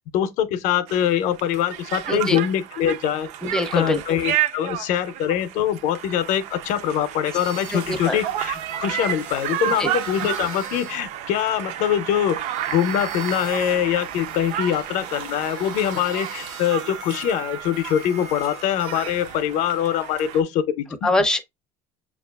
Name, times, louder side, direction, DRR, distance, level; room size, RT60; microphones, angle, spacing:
voice 1, 0.0-3.3 3.7-12.4 12.7-21.1, left 10 dB, 60° left, 0.5 m, -23 dB
Conversation, 0.9-20.4, right 11 dB, 55° right, 0.4 m, -32 dB
voice 2, 2.1-2.4 3.4-4.0 7.7-8.2 9.8-9.9 21.0-21.4, left 1 dB, 5° left, 0.5 m, -22 dB
sound 1, 7.3-11.0 11.4-19.4, right 4 dB, 90° right, 1.0 m, -40 dB
6.5 x 2.4 x 2.2 m
cardioid pair, 150°, 14 cm